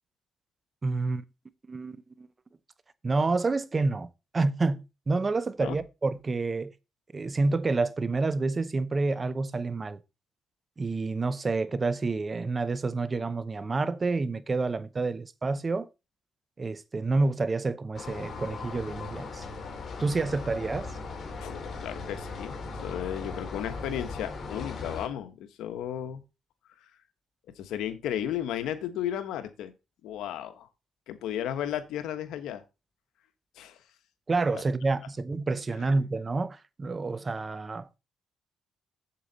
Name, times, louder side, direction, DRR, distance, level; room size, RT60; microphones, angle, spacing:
voice 1, 0.8-1.2 1.7-2.3 3.0-4.1 4.3-6.7 7.1-10.0 10.8-15.9 16.6-19.5 20.0-20.9 34.3-37.9, right 3 dB, 30° right, 0.7 m, -28 dB
sound 1, 17.9-25.1, left 4 dB, 45° left, 2.9 m, -38 dB
voice 2, 21.4-22.5 22.8-26.2 27.6-29.7 30.0-30.7 31.1-32.6 33.6-33.8, left 10 dB, 85° left, 1.2 m, -34 dB
8.4 x 7.7 x 4.1 m
cardioid pair, 90°, 0 cm